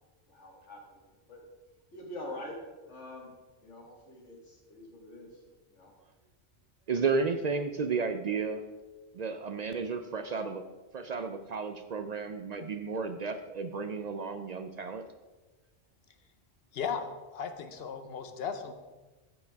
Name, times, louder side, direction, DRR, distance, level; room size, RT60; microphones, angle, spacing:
voice 1, 0.3-1.0 1.3-1.4 1.9-2.6 2.9-3.3 3.6-5.3 5.7-5.9, left 1 dB, 80° left, 0 dB, 2.1 m, -45 dB
voice 2, 6.9-8.6 9.1-10.6 10.9-15.0, right 4 dB, 60° right, 8 dB, 0.4 m, -33 dB
voice 3, 16.7-17.0 17.3-18.7, left 7 dB, 60° left, 8 dB, 1.0 m, -36 dB
14.0 x 5.2 x 3.4 m, 1.2 s
omnidirectional pair, 1.2 m